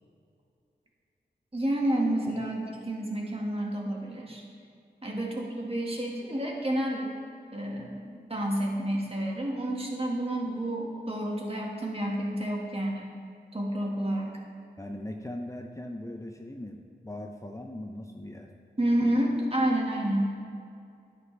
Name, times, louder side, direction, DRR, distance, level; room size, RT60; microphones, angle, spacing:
voice 1, 1.5-4.4 5.0-7.2 7.5-13.1 13.5-14.4 18.8-20.4, right 1 dB, 30° right, -2 dB, 1.9 m, -29 dB
voice 2, 14.8-18.5, left 1 dB, 15° left, 2 dB, 0.7 m, -39 dB
9.4 x 9.3 x 3.4 m, 2.5 s
cardioid pair, 40°, 19 cm